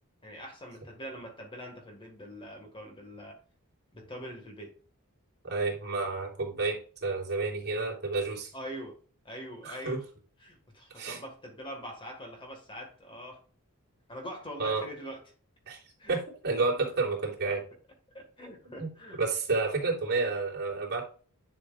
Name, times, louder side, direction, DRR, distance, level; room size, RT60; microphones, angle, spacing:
voice 1, 0.2-3.4 3.9-4.7 8.5-9.0 9.3-10.0 10.4-13.4 14.1-15.2 16.0-16.2 18.1-19.2, equal, 25° left, 1.8 m, -43 dB
voice 2, 5.4-8.5 9.6-10.0 10.9-11.2 14.6-14.8 15.7-15.8 16.1-17.6 18.6-18.9 19.2-21.0, right 3 dB, 50° right, 3.2 m, -30 dB
10.5 x 6.2 x 2.5 m
head